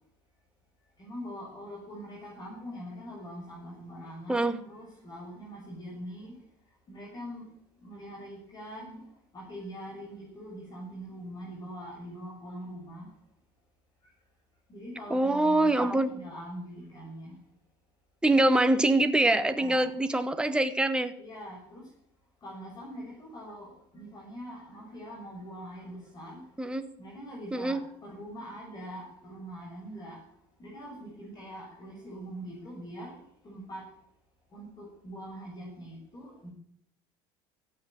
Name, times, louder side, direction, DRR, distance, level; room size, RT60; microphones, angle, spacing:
voice 1, 1.0-6.4 6.9-7.5 7.8-9.0 9.3-13.1 14.7-17.4 19.4-19.9 21.2-21.9 22.4-26.5 27.0-30.2 30.6-33.9 34.5-36.5, equal, 35° left, -2 dB, 6.7 m, -43 dB
voice 2, 15.1-16.1 18.2-21.1 26.6-26.9 27.5-27.8, right 2 dB, 5° right, 9 dB, 1.5 m, -24 dB
16.0 x 8.8 x 9.0 m, 0.66 s
supercardioid pair, 95°, 12 cm